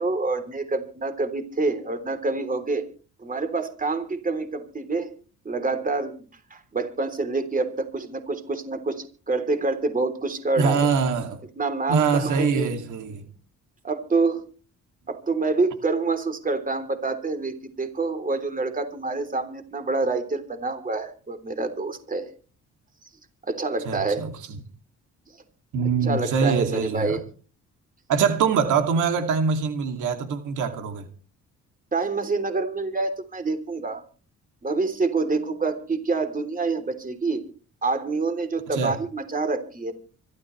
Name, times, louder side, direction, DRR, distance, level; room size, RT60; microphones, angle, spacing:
voice 1, 0.0-2.8 3.2-5.1 5.4-6.1 6.5-10.9 11.6-12.7 13.8-14.4 15.1-22.3 23.5-24.2 26.0-27.2 31.9-34.0 34.6-37.4 37.8-39.9, right 3 dB, 25° right, 3.4 m, -27 dB
voice 2, 10.6-11.4 11.9-13.2 23.9-24.3 25.7-27.2 28.1-31.1 38.7-38.9, right 5 dB, 80° right, 2.6 m, -23 dB
25.0 x 13.0 x 3.2 m
cardioid pair, 90°, 30 cm